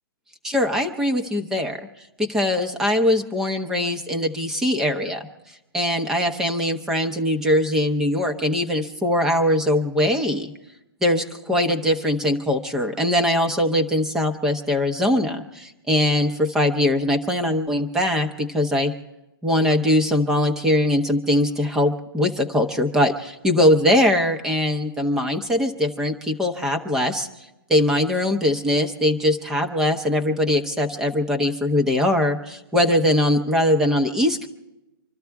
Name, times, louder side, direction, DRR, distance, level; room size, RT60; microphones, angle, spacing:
voice 1, 0.4-1.9 2.2-5.3 5.7-10.5 11.0-18.9 19.4-27.3 27.7-34.5, left 1 dB, 5° right, 5 dB, 0.8 m, -21 dB
26.0 x 13.5 x 3.5 m, 0.96 s
hypercardioid pair, 175°, 12 cm